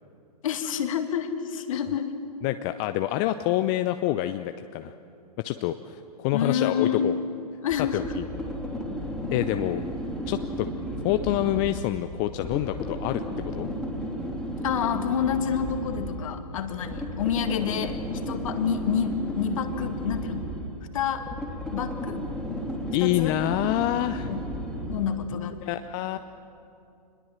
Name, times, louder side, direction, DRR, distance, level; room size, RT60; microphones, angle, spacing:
voice 1, 0.4-2.1 6.3-7.1 7.6-8.0 14.6-18.0 18.3-20.5 20.9-21.3 21.7-22.2 23.0-23.4 24.3-24.4 24.9-25.6, left 8 dB, 55° left, 7 dB, 2.1 m, -28 dB
voice 2, 2.4-4.9 5.4-7.2 7.9-8.3 9.3-9.8 10.3-10.7 11.0-13.2 13.5-13.7 22.9-24.3 25.3-26.2, left 14 dB, 30° left, 9 dB, 0.6 m, -27 dB
sound 1, 7.7-25.3, equal, ahead, 3.1 m, -34 dB
25.0 x 21.0 x 7.5 m, 2.6 s
figure-of-eight pair, 120°, 21 cm